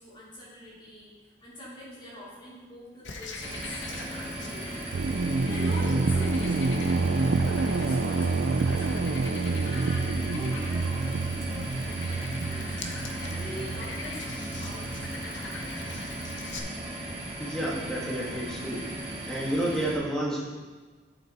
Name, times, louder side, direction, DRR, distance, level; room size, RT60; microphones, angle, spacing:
voice 1, 0.0-4.9 5.4-9.0 9.6-15.9, left 1 dB, 25° left, -7 dB, 2.9 m, -44 dB
Frog, 3.0-16.6, left 3 dB, 70° left, 0.9 m, -43 dB
sound 1, 3.4-19.9, right 1 dB, 30° right, 1.6 m, -37 dB
sound 2, 4.9-16.4, right 3 dB, 65° right, 0.5 m, -28 dB
voice 2, 17.4-19.0 19.3-20.5, right 1 dB, 5° left, -5 dB, 1.8 m, -30 dB
8.9 x 7.1 x 4.3 m, 1.3 s
head